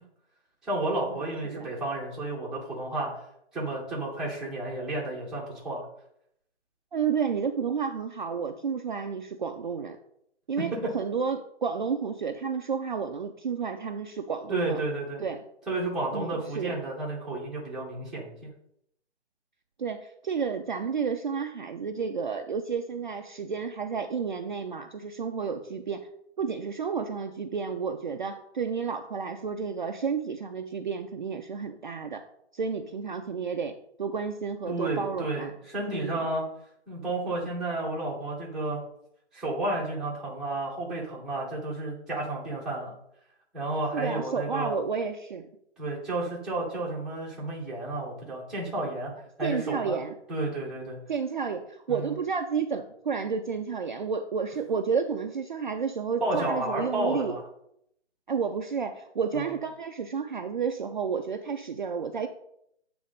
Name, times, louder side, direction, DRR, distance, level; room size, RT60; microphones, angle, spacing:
voice 1, 0.6-3.2 3.5-5.8 10.7-10.9 14.5-15.2 15.7-18.5 34.7-36.4 36.9-38.8 39.3-42.9 43.5-44.8 45.8-49.1 49.4-50.0 50.3-51.0 51.9-52.1 56.2-57.4 59.3-59.5, right 2 dB, ahead, -6 dB, 0.9 m, -31 dB
voice 2, 6.9-10.0 10.5-14.8 15.2-15.4 16.1-16.7 19.8-26.1 26.4-32.2 32.5-35.5 35.9-36.2 43.9-45.5 49.4-50.1 51.1-57.4 58.3-62.3, right 6 dB, 45° right, 5 dB, 0.4 m, -31 dB
8.1 x 3.4 x 5.0 m, 0.74 s
hypercardioid pair, 155°, 36 cm